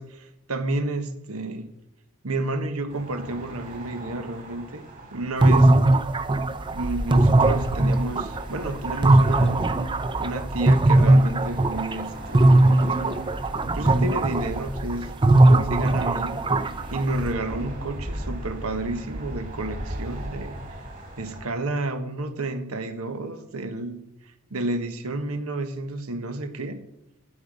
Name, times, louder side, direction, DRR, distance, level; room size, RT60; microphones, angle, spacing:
voice 1, 0.0-1.7 2.2-4.8 5.1-5.7 6.7-9.6 10.2-13.3 13.7-15.1 15.7-16.5 16.9-20.6 21.2-24.0 24.5-26.8, right 2 dB, 75° right, 9 dB, 1.2 m, -31 dB
sound 1, 2.9-21.4, equal, 40° right, 4.1 m, -36 dB
sound 2, 5.4-12.1 12.3-17.3, right 2 dB, 20° right, 0.5 m, -19 dB
16.5 x 6.5 x 5.3 m, 0.83 s
head